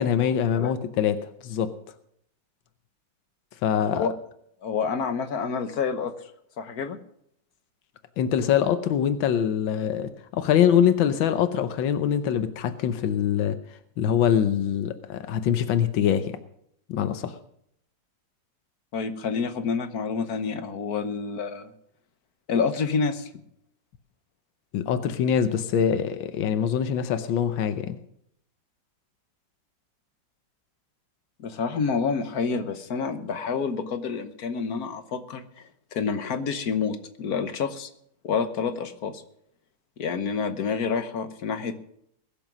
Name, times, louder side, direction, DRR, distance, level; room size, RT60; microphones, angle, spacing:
voice 1, 0.0-1.7 3.6-4.1 8.2-13.6 14.0-16.4 16.9-17.3 24.7-28.0, left 9 dB, 90° left, 10 dB, 1.6 m, -24 dB
voice 2, 4.6-6.1 6.6-7.0 18.9-21.7 22.5-23.3 31.4-37.9 38.2-39.2 40.0-41.8, left 5 dB, 55° left, 9 dB, 1.4 m, -28 dB
21.0 x 7.0 x 6.1 m, 0.72 s
omnidirectional pair, 2.0 m